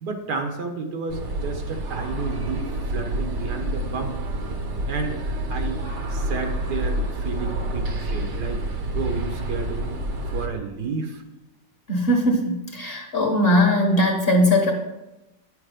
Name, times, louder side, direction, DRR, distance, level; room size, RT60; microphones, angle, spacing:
voice 1, 0.0-4.2 4.9-5.8 6.1-8.6 8.9-9.9 10.3-11.2, right 4 dB, 65° right, 4 dB, 1.5 m, -31 dB
sound 1, 1.1-10.5, right 1 dB, 45° right, 1.2 m, -28 dB
voice 2, 11.9-14.7, left 1 dB, 35° left, 1 dB, 1.6 m, -20 dB
10.5 x 6.8 x 5.2 m, 0.95 s
omnidirectional pair, 2.0 m